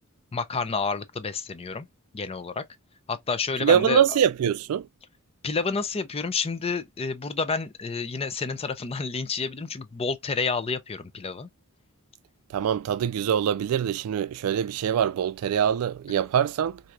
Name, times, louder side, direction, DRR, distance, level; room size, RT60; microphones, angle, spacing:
voice 1, 0.3-1.9 2.1-2.6 3.1-4.0 5.4-11.5, left 4 dB, 25° left, 0.5 m, -29 dB
voice 2, 3.6-4.9 12.5-16.8, right 8 dB, 70° right, 0.3 m, -24 dB
4.4 x 2.7 x 2.3 m
head